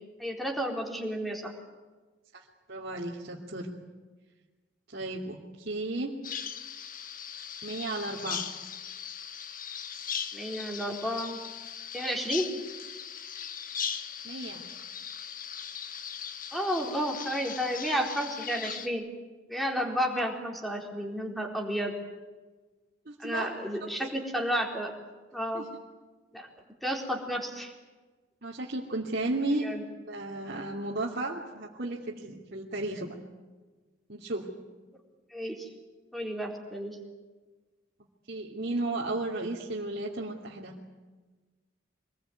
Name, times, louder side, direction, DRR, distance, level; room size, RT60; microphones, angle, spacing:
voice 1, 0.2-1.5 10.3-11.4 11.9-12.5 16.5-19.1 19.5-21.9 23.2-24.9 25.3-25.7 26.3-26.5 26.8-27.7 29.6-29.8 35.3-35.7 36.1-37.0, equal, ahead, 1 dB, 4.1 m, -31 dB
voice 2, 2.3-3.7 4.9-6.2 7.6-8.4 14.2-14.6 23.1-23.5 24.0-24.1 25.5-25.7 28.4-29.6 30.1-33.1 34.1-34.5 38.3-40.8, right 2 dB, 55° right, -5 dB, 2.8 m, -34 dB
Bird vocalization bird call bird song, 6.2-18.9, left 8 dB, 45° left, 1.5 m, -39 dB
25.5 x 20.5 x 9.4 m, 1.3 s
head